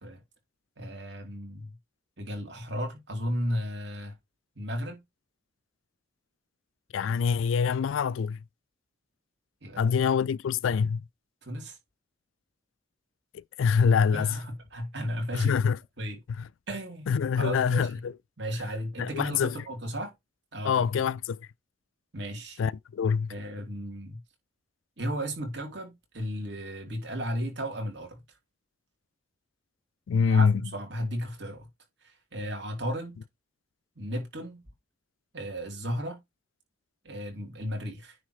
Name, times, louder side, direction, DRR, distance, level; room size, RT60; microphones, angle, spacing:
voice 1, 0.8-1.8 2.2-4.1 4.5-5.0 9.6-9.8 11.4-11.8 14.1-15.6 16.0-16.2 16.7-17.9 18.4-20.1 20.5-20.9 22.1-22.6 23.3-24.2 25.0-28.2 30.3-31.7 32.0-33.2 33.9-34.6 35.3-36.2 37.0-38.2, equal, 60° right, 3.3 m, -34 dB
voice 2, 6.9-8.4 9.8-11.0 13.3-14.4 15.3-15.8 16.4-16.5 17.1-18.2 19.0-19.6 20.6-21.5 22.6-23.4 30.1-30.6, left 6 dB, 80° left, 0.4 m, -25 dB
9.8 x 3.6 x 4.8 m
head